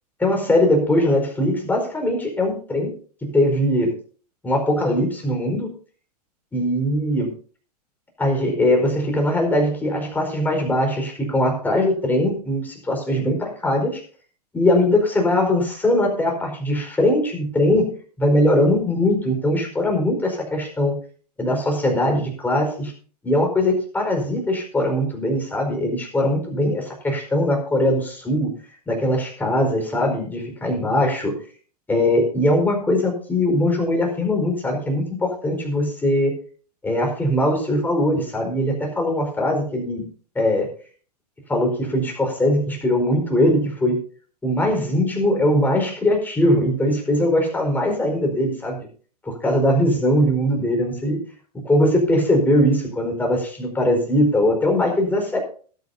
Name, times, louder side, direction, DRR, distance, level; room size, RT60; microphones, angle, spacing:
voice 1, 0.2-2.9 3.2-3.9 4.4-5.7 6.5-7.3 8.2-14.0 14.5-21.0 21.4-22.9 23.2-28.5 28.9-31.3 31.9-36.3 36.8-40.1 40.3-40.7 41.5-44.0 44.4-48.9 49.2-51.2 51.6-55.4, left 1 dB, 10° left, 2 dB, 4.7 m, -21 dB
21.0 x 9.4 x 2.7 m, 0.42 s
figure-of-eight pair, 100°, 21 cm